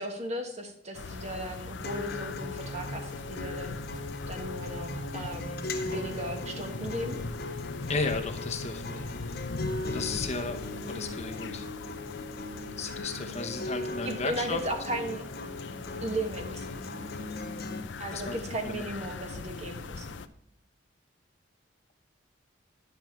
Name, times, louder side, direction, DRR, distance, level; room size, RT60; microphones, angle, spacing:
voice 1, 0.0-3.8 4.3-7.2 14.0-15.2 16.0-16.7 18.0-20.2, right 1 dB, 35° right, 4 dB, 1.4 m, -36 dB
sound 1, 0.9-20.3, left 4 dB, 70° left, 0.6 m, -40 dB
Acoustic guitar, 1.8-17.8, left 2 dB, 50° left, 1.3 m, -38 dB
voice 2, 7.9-9.1 9.8-11.7 12.8-14.6 18.1-18.4 18.6-18.8, left 3 dB, 35° left, 5 dB, 0.9 m, -34 dB
11.0 x 6.9 x 4.5 m, 0.78 s
head